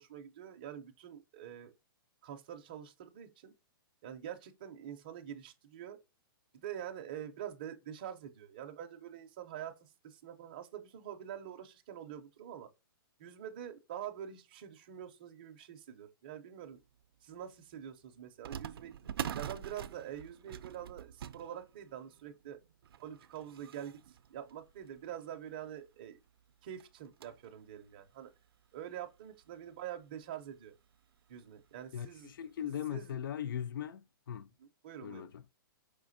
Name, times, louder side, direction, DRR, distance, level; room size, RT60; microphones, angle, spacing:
voice 1, 0.0-1.7 2.2-3.5 4.0-6.0 6.5-12.7 13.2-16.8 17.2-18.9 19.3-22.6 23.0-26.2 26.6-28.3 28.7-30.7 31.3-32.3 32.6-33.2 34.6-35.3, right 10 dB, 25° right, 0.4 m, -46 dB
sound 1, 17.0-17.1 18.4-25.4 26.0-26.1 26.3-26.4 26.8-27.5 28.0-28.1 29.0-29.1 29.4-29.6 30.9-31.2 31.6-31.7 32.3-32.5, right 9 dB, 85° right, 0.4 m, -45 dB
voice 2, 31.9-34.5 35.0-35.4, left 9 dB, 65° left, 0.4 m, -39 dB
4.9 x 3.3 x 2.5 m
hypercardioid pair, 180°, 12 cm